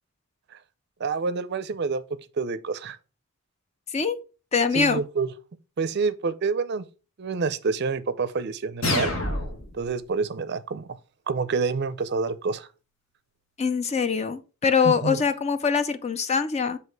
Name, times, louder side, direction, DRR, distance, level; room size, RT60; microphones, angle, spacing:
voice 1, 1.0-2.0 2.4-3.0 4.7-5.3 5.8-6.9 7.2-9.1 9.7-10.9 11.3-12.7 14.8-15.2, right 4 dB, 50° right, 0.4 m, -27 dB
voice 2, 4.5-5.0 13.6-16.8, left 5 dB, 30° left, 0.4 m, -23 dB
sound 1, 8.8-9.8, left 2 dB, 65° left, 1.2 m, -27 dB
7.7 x 2.9 x 4.6 m
head